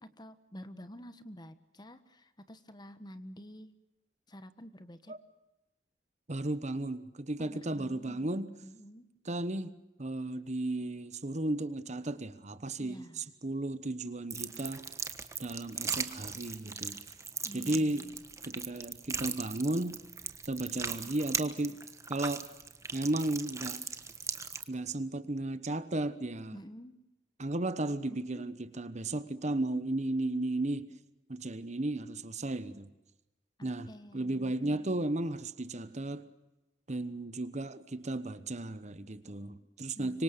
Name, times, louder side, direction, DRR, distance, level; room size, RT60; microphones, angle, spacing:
voice 1, 0.2-3.7 4.3-5.1 7.4-9.0 12.8-13.2 17.4-18.2 26.5-27.0 28.1-28.5 33.6-34.9 39.9-40.2, equal, 25° left, 1.4 m, -49 dB
voice 2, 6.3-8.5 9.2-9.7 10.0-14.8 15.4-17.0 17.5-18.1 18.4-20.0 20.4-21.8 22.1-22.5 22.9-23.8 24.7-26.6 27.4-30.9 31.3-32.9 33.6-33.9 34.1-36.3 36.9-40.2, right 2 dB, 40° right, 1.1 m, -34 dB
sound 1, 14.3-24.6, right 5 dB, 15° right, 1.3 m, -39 dB
26.0 x 24.0 x 6.7 m
head